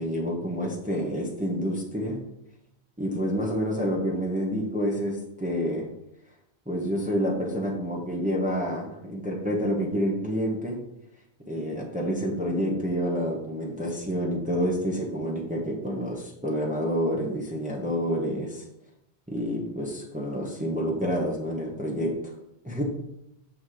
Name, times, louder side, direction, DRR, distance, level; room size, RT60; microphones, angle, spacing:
voice 1, 0.0-2.2 3.0-5.9 6.7-10.8 11.5-18.6 19.3-22.1 22.6-22.8, equal, 5° right, -2 dB, 1.2 m, -28 dB
7.4 x 6.1 x 5.0 m, 0.82 s
omnidirectional pair, 1.1 m